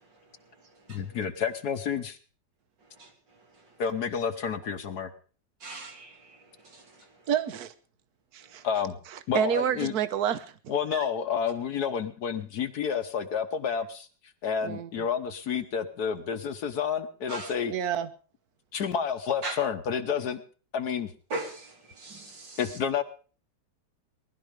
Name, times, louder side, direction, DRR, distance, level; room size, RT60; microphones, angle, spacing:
voice 1, 0.9-2.2 3.8-5.1 8.6-9.0 9.3-9.9 10.7-14.1 14.4-17.7 18.7-20.4 20.7-21.1 22.6-23.0, left 7 dB, 65° left, 8 dB, 1.4 m, -30 dB
voice 2, 5.6-6.2 17.3-17.5 19.4-19.6 21.3-22.6, right 2 dB, 85° right, 3 dB, 3.6 m, -37 dB
voice 3, 7.3-7.7 8.3-8.6 9.3-10.5 10.9-11.0 14.6-15.1 17.7-18.1, right 9 dB, 60° right, 14 dB, 1.4 m, -28 dB
19.5 x 12.5 x 5.1 m, 0.40 s
omnidirectional pair, 1.9 m